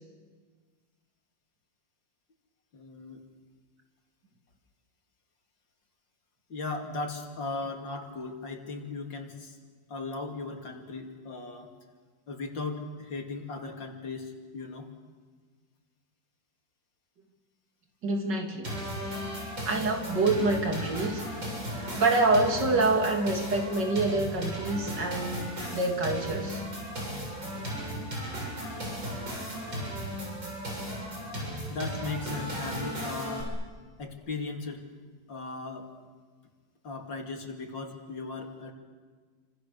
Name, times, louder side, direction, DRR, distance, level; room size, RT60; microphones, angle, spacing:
voice 1, 2.7-3.2 6.5-9.6 9.9-11.7 12.3-14.9 31.7-33.6 34.0-34.8 35.3-35.9 36.8-38.7, left 3 dB, 80° left, 2 dB, 3.2 m, -37 dB
voice 2, 18.0-18.8 19.6-21.2 21.8-26.6 30.7-31.2 31.5-31.6, right 2 dB, 65° right, 3 dB, 3.6 m, -27 dB
sound 1, 18.6-33.4, equal, 85° right, 8.0 m, -36 dB
29.5 x 26.5 x 6.8 m, 1.5 s
omnidirectional pair, 2.0 m